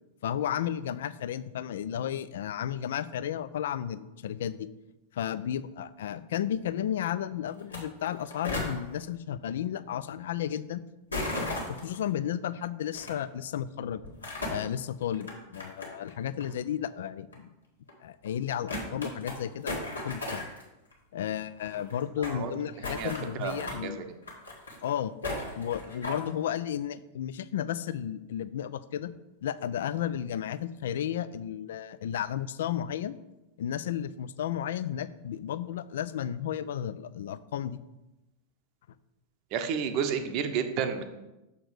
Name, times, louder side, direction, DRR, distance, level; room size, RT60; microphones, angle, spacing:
voice 1, 0.2-4.7 5.1-10.8 11.7-14.0 14.5-17.5 18.0-20.5 21.1-24.1 24.8-25.1 25.6-29.1 29.4-33.2 33.6-37.8, left 10 dB, 60° left, 15 dB, 0.3 m, -33 dB
sound 1, 7.6-7.8 8.0-8.7 11.1-12.0 12.9-13.1 14.0-14.6 15.1-16.1 16.4-16.5 17.3-17.4 17.9-18.0 18.2-18.3 18.7-19.4 19.7-20.6 20.9-21.0 21.2-21.3 21.4-22.4 22.8-23.8 24.2-24.9 25.2-26.3, left 2 dB, 75° left, 1.5 m, -35 dB
voice 2, 23.4-23.9 39.5-41.0, right 7 dB, 40° right, 8 dB, 0.7 m, -31 dB
6.7 x 4.3 x 4.8 m, 0.98 s
figure-of-eight pair, 90°, 0 cm